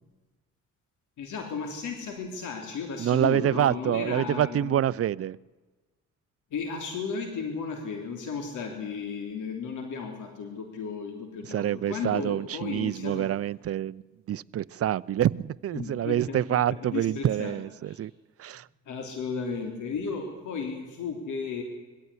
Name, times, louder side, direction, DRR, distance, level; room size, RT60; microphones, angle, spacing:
voice 1, 1.2-4.8 6.5-13.3 15.7-17.6 17.9-18.0 18.9-21.6, left 5 dB, 80° left, 4 dB, 3.4 m, -34 dB
voice 2, 3.0-5.4 11.5-14.0 14.3-18.1 18.4-18.7, right 11 dB, 50° right, 18 dB, 0.6 m, -27 dB
22.0 x 15.0 x 9.8 m, 1.2 s
cardioid pair, 90°, 30 cm